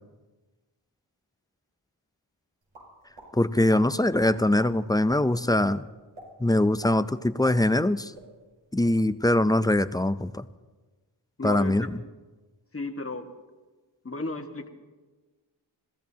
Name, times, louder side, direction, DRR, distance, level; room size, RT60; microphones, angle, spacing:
sound 1, 2.7-3.3 3.7-3.8 4.2-4.7 5.1-5.2 5.6-5.7 6.1-6.3 6.7-7.9 8.1-8.3 8.7-9.0, right 1 dB, 80° right, 6.3 m, -46 dB
voice 1, 3.3-5.8 6.4-8.1 8.7-10.5 11.4-12.0, left 1 dB, 10° left, 14 dB, 0.4 m, -23 dB
voice 2, 11.4-11.9 12.7-13.2 14.0-14.7, left 3 dB, 25° left, 5 dB, 1.6 m, -33 dB
28.0 x 16.0 x 2.8 m, 1.3 s
cardioid pair, 55°, 49 cm